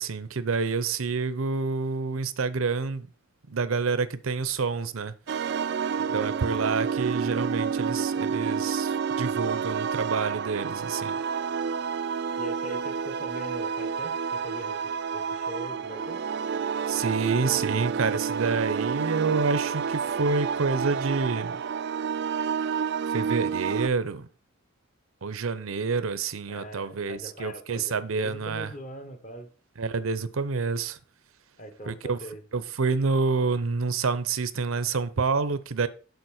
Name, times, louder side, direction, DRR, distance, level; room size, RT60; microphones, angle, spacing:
voice 1, 0.0-3.1 3.5-5.1 6.1-11.2 16.9-21.6 23.1-24.3 25.2-28.7 29.8-31.0 31.9-32.2 32.5-35.9, right 4 dB, 80° right, 0.7 m, -28 dB
sound 1, 5.3-23.9, right 6 dB, 55° right, 0.3 m, -29 dB
voice 2, 6.0-6.4 12.4-16.2 26.5-29.5 31.6-32.4, equal, 35° left, 1.3 m, -42 dB
7.0 x 4.2 x 6.3 m
head